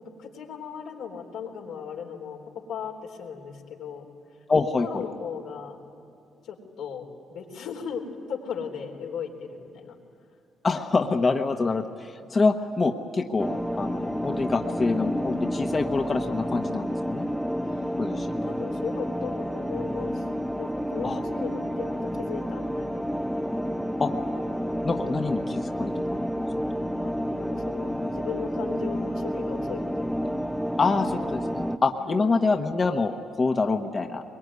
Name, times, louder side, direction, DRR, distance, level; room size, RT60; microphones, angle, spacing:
voice 1, 0.0-4.1 4.8-5.8 6.4-7.0 7.3-10.0 17.7-20.3 20.6-23.0 27.0-27.1 27.4-30.2 32.0-32.3, left 7 dB, 90° left, 0 dB, 3.9 m, -37 dB
voice 2, 4.5-5.0 10.6-13.5 13.8-17.3 18.0-18.3 21.0-21.2 24.0-24.1 24.8-26.2 30.8-34.2, left 3 dB, 35° left, 4 dB, 1.2 m, -26 dB
sound 1, 13.4-31.8, equal, ahead, 0.8 m, -30 dB
23.0 x 22.5 x 9.7 m, 2.6 s
cardioid pair, 90°, 0 cm